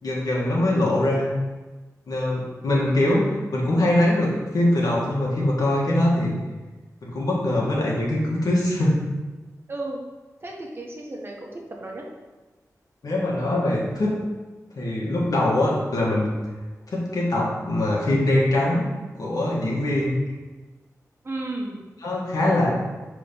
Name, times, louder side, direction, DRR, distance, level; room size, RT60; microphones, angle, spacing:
voice 1, 0.0-1.3 2.1-6.3 7.0-8.9 13.0-14.2 14.7-16.3 16.9-18.8 19.2-20.1 22.0-22.7, left 1 dB, 80° left, -4 dB, 1.6 m, -22 dB
voice 2, 9.7-10.0 10.4-12.0 21.2-21.8, right 2 dB, 40° right, -1 dB, 1.2 m, -33 dB
5.1 x 3.8 x 5.3 m, 1.2 s
wide cardioid pair, 65°, 6 cm